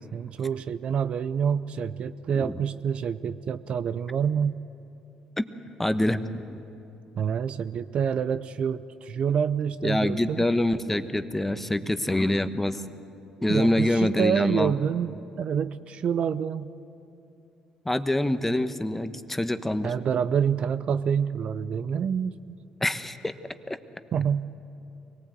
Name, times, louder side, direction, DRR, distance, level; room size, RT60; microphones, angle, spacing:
voice 1, 0.1-4.6 7.2-10.4 13.5-16.7 19.8-22.3 24.1-24.4, right 7 dB, 55° right, 13 dB, 0.6 m, -27 dB
voice 2, 5.8-6.6 9.8-12.8 13.4-14.7 17.8-19.9 22.8-23.3, left 1 dB, 10° left, 10 dB, 1.1 m, -25 dB
24.5 x 18.5 x 8.1 m, 2.8 s
supercardioid pair, 70°, 2 cm